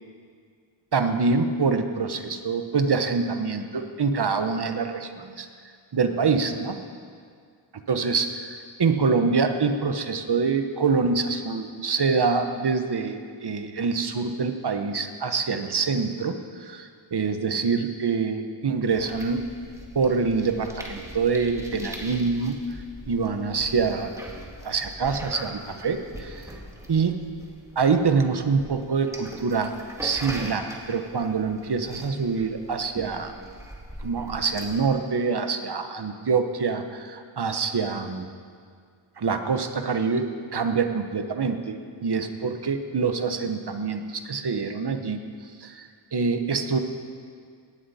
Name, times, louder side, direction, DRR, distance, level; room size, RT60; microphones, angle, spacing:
voice 1, 0.9-5.5 5.9-6.8 7.9-19.4 19.9-22.6 23.1-24.2 24.6-26.5 26.9-27.2 27.8-29.7 30.0-33.3 34.0-38.3 39.2-46.8, right 5 dB, 50° right, 7 dB, 1.0 m, -25 dB
sound 1, 18.9-34.8, equal, 5° right, 1.8 m, -41 dB
18.0 x 11.5 x 4.2 m, 2.1 s
wide cardioid pair, 100°, 49 cm